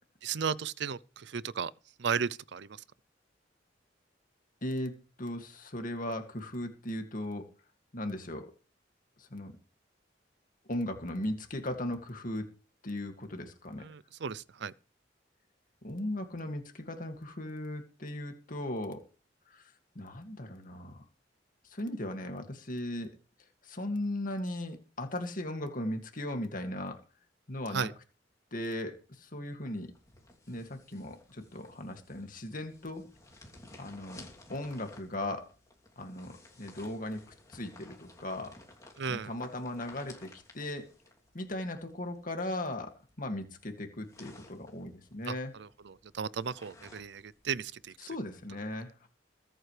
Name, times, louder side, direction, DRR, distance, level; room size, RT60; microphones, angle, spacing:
voice 1, 0.2-1.7 2.0-2.8 13.8-14.7 27.7-27.9 39.0-39.3 45.3-47.9, right 6 dB, 65° right, 0.5 m, -35 dB
voice 2, 4.6-7.5 7.9-8.5 9.2-9.5 10.7-12.5 12.8-13.8 15.8-19.0 19.5-19.6 20.0-21.0 21.7-23.1 23.6-27.0 27.5-27.9 28.5-29.9 30.5-33.0 33.8-35.4 36.0-37.2 37.5-38.5 39.1-40.9 41.3-45.5 48.0-49.1, left 1 dB, 50° left, 2.3 m, -37 dB
sound 1, 29.6-47.9, left 2 dB, 20° left, 3.0 m, -56 dB
22.5 x 9.0 x 3.3 m
head